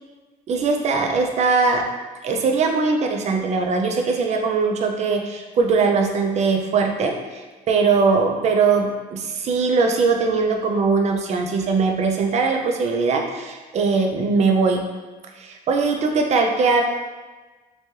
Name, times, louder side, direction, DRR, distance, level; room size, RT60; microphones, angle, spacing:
voice 1, 0.5-1.8 2.2-14.8 15.4-16.8, right 4 dB, 40° right, 3 dB, 0.4 m, -20 dB
2.8 x 2.2 x 3.1 m, 1.3 s
cardioid pair, 110°, 17 cm